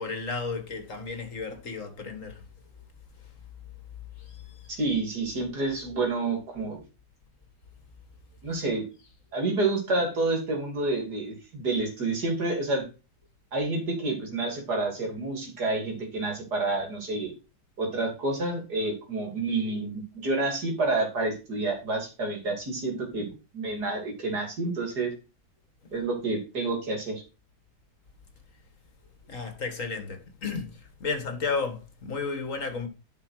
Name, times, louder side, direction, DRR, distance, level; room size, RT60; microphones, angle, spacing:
voice 1, 0.0-2.4 4.2-4.8 29.3-32.9, left 4 dB, 50° left, 1.9 m, -33 dB
voice 2, 4.7-6.8 8.4-8.9 9.3-12.9 13.5-17.3 17.8-25.1 25.9-27.2, right 2 dB, 70° right, 3.3 m, -29 dB
11.5 x 5.2 x 4.8 m
omnidirectional pair, 1.8 m